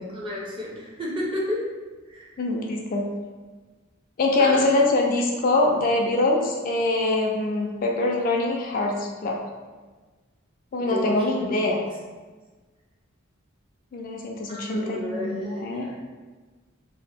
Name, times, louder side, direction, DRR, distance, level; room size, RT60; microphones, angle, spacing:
voice 1, 0.1-1.6 2.1-2.3 4.4-4.7 10.8-11.5 14.5-15.9, left 1 dB, 25° right, -4 dB, 0.5 m, -32 dB
voice 2, 2.4-3.1 4.2-9.4 10.7-11.8 13.9-15.9, left 2 dB, 40° left, 0 dB, 0.3 m, -23 dB
2.8 x 2.0 x 3.3 m, 1.3 s
head